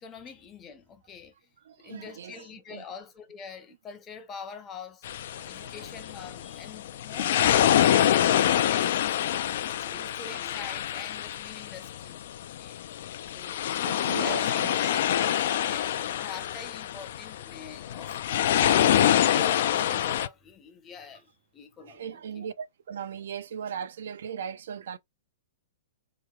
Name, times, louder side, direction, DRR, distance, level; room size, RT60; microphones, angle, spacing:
voice 1, 0.0-1.5 1.8-5.0 5.5-9.2 9.6-12.2 12.6-12.8 13.3-22.5, left 6 dB, 15° left, 0.6 m, -45 dB
voice 2, 1.6-2.8 5.3-5.9 7.5-7.6 9.9-10.4 13.8-14.8 21.8-25.0, right 7 dB, 70° right, 0.4 m, -39 dB
sound 1, 5.0-20.3, left 11 dB, 55° left, 0.3 m, -26 dB
4.5 x 3.0 x 2.3 m
hypercardioid pair, 165°, 0 cm